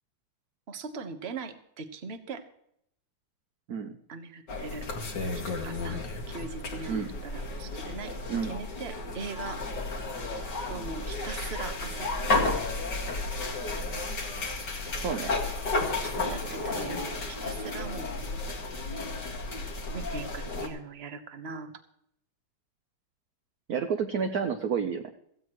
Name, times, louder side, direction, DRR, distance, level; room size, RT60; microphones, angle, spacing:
voice 1, 0.7-2.4 4.1-4.9 5.2-6.0 6.3-8.1 8.4-9.6 10.7-12.7 15.7-18.1 19.9-21.8, right 4 dB, 35° right, 8 dB, 1.2 m, -40 dB
sound 1, 4.5-20.7, left 2 dB, 55° left, 2.7 m, -33 dB
voice 2, 15.0-15.4 23.7-25.0, right 6 dB, 55° right, 6 dB, 1.1 m, -30 dB
16.5 x 15.0 x 3.1 m, 0.72 s
omnidirectional pair, 2.3 m